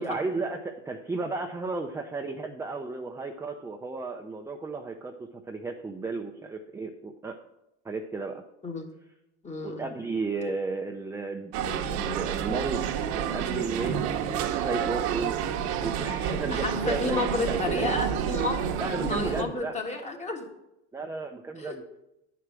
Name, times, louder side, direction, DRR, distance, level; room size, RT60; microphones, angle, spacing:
voice 1, 0.0-7.4 7.8-8.4 9.6-17.9 18.8-19.8 20.9-21.8, right 3 dB, 10° right, 3 dB, 0.6 m, -34 dB
voice 2, 9.4-9.8 16.5-18.6 19.0-20.5 21.6-21.8, left 3 dB, 20° left, 3 dB, 1.7 m, -31 dB
sound 1, 11.5-19.4, right 8 dB, 60° right, 1.0 m, -29 dB
10.0 x 4.8 x 6.0 m, 0.87 s
supercardioid pair, 110°, 33 cm